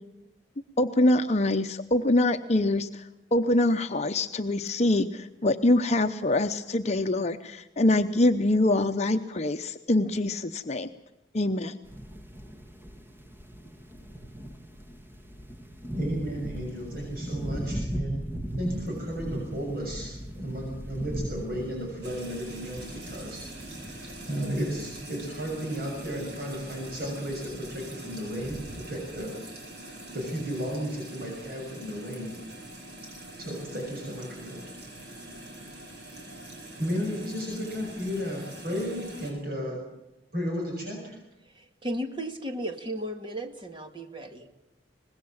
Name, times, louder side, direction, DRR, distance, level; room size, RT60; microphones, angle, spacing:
voice 1, 0.8-2.9 3.3-10.9 11.3-11.7, left 1 dB, 40° left, 7 dB, 0.8 m, -24 dB
sound 1, 11.8-29.2, right 1 dB, 15° right, 1.7 m, -39 dB
voice 2, 15.9-18.2 18.6-23.4 23.7-29.3 29.8-32.3 33.4-34.8 35.9-36.1 36.8-39.8 40.3-41.2, equal, 60° right, -1 dB, 6.9 m, -34 dB
sound 2, 22.0-39.3, right 1 dB, 75° right, 6.4 m, -44 dB
voice 3, 41.5-44.5, right 1 dB, 30° right, 5 dB, 2.1 m, -35 dB
24.5 x 20.5 x 7.3 m, 0.88 s
head